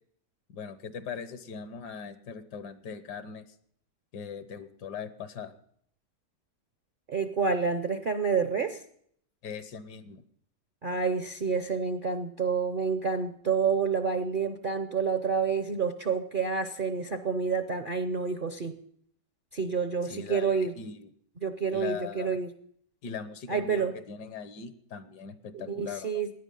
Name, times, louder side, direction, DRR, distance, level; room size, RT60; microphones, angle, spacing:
voice 1, 0.5-3.4 4.1-5.5 9.4-10.2 20.1-21.1 21.7-22.4 23.0-26.2, left 6 dB, 75° left, 12 dB, 1.6 m, -40 dB
voice 2, 7.1-8.8 10.8-18.8 19.5-20.7 21.4-22.5 23.5-23.9 25.5-26.3, right 5 dB, 50° right, 8 dB, 0.6 m, -29 dB
18.0 x 10.5 x 5.3 m, 0.65 s
omnidirectional pair, 1.8 m